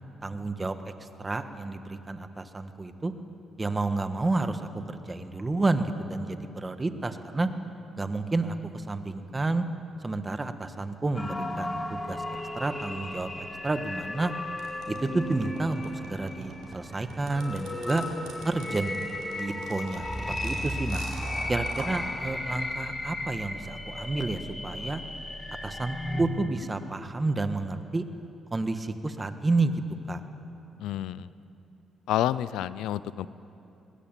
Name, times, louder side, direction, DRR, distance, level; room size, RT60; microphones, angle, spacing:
voice 1, 0.2-3.1 3.6-7.5 8.0-9.6 10.0-13.3 13.6-14.3 14.9-18.1 18.4-19.0 19.3-21.0 21.5-25.0 25.6-28.0 28.5-29.7 30.1-30.2, right 2 dB, 20° right, 8 dB, 1.5 m, -30 dB
sound 1, 11.1-26.2, left 1 dB, 20° left, 2.5 m, -35 dB
sound 2, 14.6-22.0, right 4 dB, 80° right, 4.8 m, -42 dB
voice 2, 30.8-31.3 32.1-33.3, left 12 dB, 90° left, 17 dB, 0.5 m, -29 dB
20.5 x 20.5 x 9.0 m, 2.9 s
cardioid pair, 90°, 0 cm